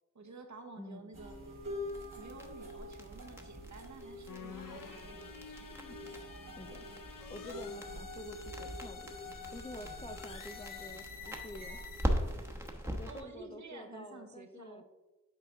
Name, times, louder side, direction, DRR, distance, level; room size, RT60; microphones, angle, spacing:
voice 1, 0.1-1.4 2.2-5.2 13.1-14.8, right 3 dB, 60° right, 3 dB, 1.1 m, -51 dB
voice 2, 0.8-1.2 5.7-6.2 6.6-6.9 7.3-9.1 9.5-11.8 12.8-14.8, left 1 dB, 20° left, 8 dB, 0.3 m, -49 dB
sound 1, 1.1-12.6, equal, 80° right, 2.2 m, -47 dB
sound 2, 1.9-13.2, equal, 10° right, 1.0 m, -41 dB
sound 3, 4.3-12.1, left 7 dB, 85° left, 0.6 m, -49 dB
8.3 x 4.2 x 3.7 m, 1.1 s
cardioid pair, 45°, 32 cm